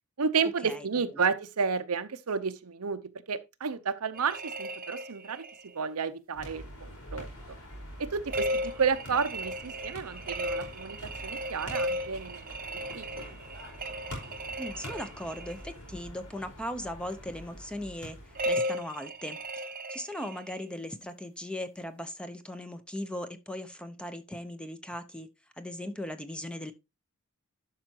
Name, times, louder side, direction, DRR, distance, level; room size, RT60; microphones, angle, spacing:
voice 1, 0.2-3.0 3.3-5.4 5.7-7.3 8.0-12.5 12.9-13.4, right 5 dB, 85° right, 0.8 m, -31 dB
sound 1, 4.1-5.7 8.3-15.7 18.3-20.6, equal, 40° right, 0.8 m, -35 dB
sound 2, 6.3-18.5, equal, 85° left, 4.9 m, -45 dB
voice 2, 14.6-25.3 25.6-26.7, left 1 dB, 5° left, 0.8 m, -38 dB
11.5 x 5.7 x 2.9 m
head